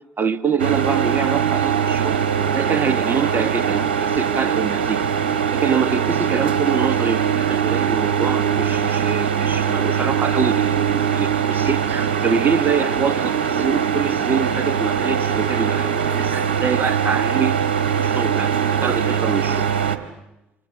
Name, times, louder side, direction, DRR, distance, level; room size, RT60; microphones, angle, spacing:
voice 1, 0.2-2.1 2.5-5.0 5.5-17.5 18.0-19.7, right 6 dB, 35° right, 12 dB, 1.8 m, -25 dB
sound 1, 0.6-20.0, right 7 dB, 80° right, 1.7 m, -21 dB
27.5 x 26.0 x 7.4 m, 0.92 s
figure-of-eight pair, 55°, 6 cm